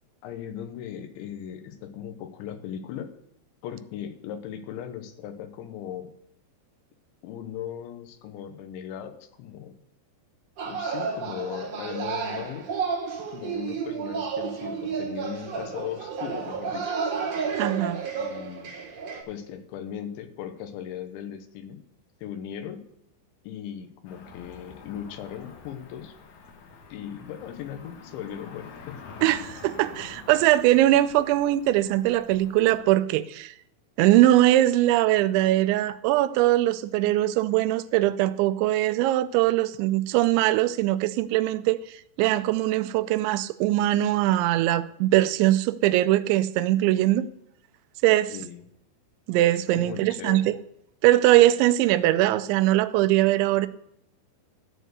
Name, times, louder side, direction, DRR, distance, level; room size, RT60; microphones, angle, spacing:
voice 1, 0.2-3.1 3.6-6.1 7.2-9.8 10.6-12.6 13.3-17.0 18.2-18.7 19.3-21.8 22.2-22.8 23.4-26.1 26.9-29.4 48.3-48.6 49.8-50.5, left 9 dB, 85° left, 3.4 m, -38 dB
sound 1, 10.6-19.2, right 5 dB, 50° right, 2.1 m, -31 dB
voice 2, 17.6-18.0 29.2-33.5 34.0-41.8 42.2-47.3 48.0-48.3 49.3-50.5 51.0-53.7, right 15 dB, 90° right, 2.9 m, -21 dB
Cricket / Motor vehicle (road), 24.0-32.8, left 5 dB, 70° left, 1.9 m, -47 dB
13.5 x 4.5 x 8.0 m
omnidirectional pair, 5.2 m